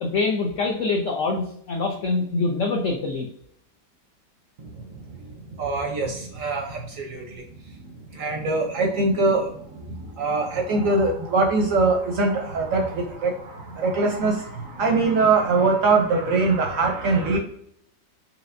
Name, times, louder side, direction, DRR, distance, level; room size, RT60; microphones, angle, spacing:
voice 1, 0.0-3.3, left 3 dB, 75° left, 2 dB, 0.7 m, -25 dB
voice 2, 4.6-7.4 7.7-17.4, right 3 dB, 65° right, 2 dB, 0.8 m, -23 dB
4.9 x 2.9 x 2.5 m, 0.69 s
omnidirectional pair, 1.8 m